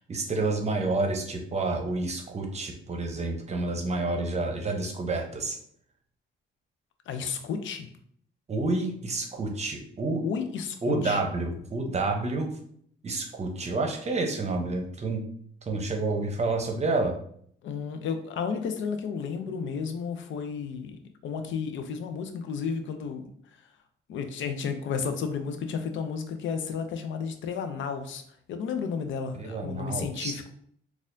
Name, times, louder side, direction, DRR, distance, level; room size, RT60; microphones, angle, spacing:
voice 1, 0.1-5.6 8.5-10.2 10.8-12.5 13.0-15.2 15.7-17.1 29.3-30.3, right 3 dB, 35° right, 3 dB, 0.7 m, -29 dB
voice 2, 7.1-7.9 10.2-11.2 17.6-23.6 24.1-28.2 28.5-30.5, left 6 dB, 75° left, 7 dB, 0.5 m, -32 dB
4.1 x 2.4 x 2.6 m, 0.64 s
cardioid pair, 90°, 20 cm